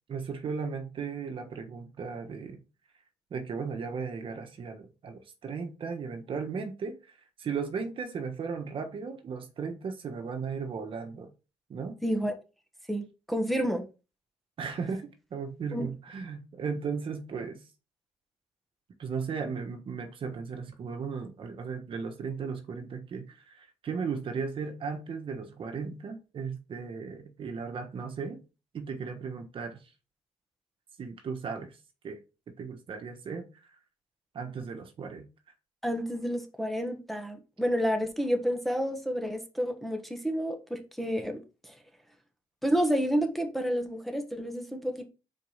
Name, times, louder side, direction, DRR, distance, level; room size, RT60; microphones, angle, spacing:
voice 1, 0.1-2.6 3.3-7.0 7.4-11.3 11.7-11.9 14.6-17.6 19.0-28.4 28.7-29.8 31.0-31.8 32.0-32.2 32.6-33.5 34.3-35.3, right 5 dB, 50° right, 1.3 m, -36 dB
voice 2, 12.0-12.3 12.9-13.8 15.7-15.9 35.8-41.7 42.6-45.1, equal, ahead, 1.2 m, -30 dB
4.7 x 4.5 x 5.6 m
cardioid pair, 115°, 12 cm